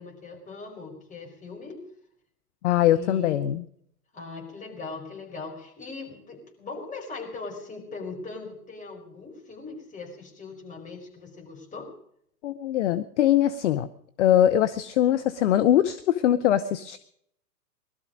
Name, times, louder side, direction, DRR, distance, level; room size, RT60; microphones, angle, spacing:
voice 1, 0.0-1.8 2.9-3.4 4.1-11.9, left 4 dB, 15° left, 0 dB, 4.9 m, -40 dB
voice 2, 2.6-3.6 12.4-13.9 14.2-17.0, left 11 dB, 45° left, 11 dB, 0.8 m, -22 dB
20.0 x 12.5 x 5.1 m, 0.70 s
figure-of-eight pair, 115°, 49 cm